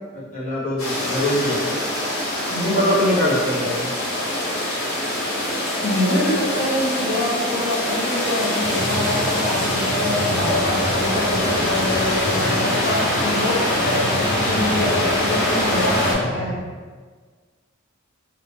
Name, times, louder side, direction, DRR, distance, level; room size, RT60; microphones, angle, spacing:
voice 1, 0.3-1.8 2.6-3.8, equal, 40° left, -8 dB, 1.2 m, -22 dB
sound 1, 0.8-16.1, left 1 dB, 80° left, 1.3 m, -23 dB
voice 2, 5.8-16.6, left 1 dB, 55° left, -4 dB, 0.9 m, -25 dB
sound 2, 8.6-16.6, equal, 25° left, 0.6 m, -31 dB
2.9 x 2.8 x 3.4 m, 1.5 s
head